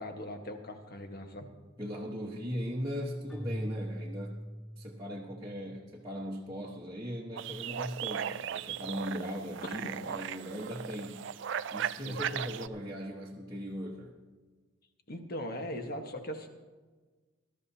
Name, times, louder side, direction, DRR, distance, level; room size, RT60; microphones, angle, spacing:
voice 1, 0.0-1.5 9.6-9.9 12.0-12.4 15.1-16.5, left 1 dB, 45° left, 4 dB, 1.3 m, -40 dB
voice 2, 1.8-4.4 4.8-11.3 11.7-14.1, equal, 15° right, -6 dB, 1.2 m, -39 dB
Keyboard (musical), 3.3-5.5, equal, 5° left, 3.6 m, -40 dB
sound 1, 7.4-12.7, right 9 dB, 55° right, 0.3 m, -37 dB
20.5 x 13.0 x 2.8 m, 1.3 s
head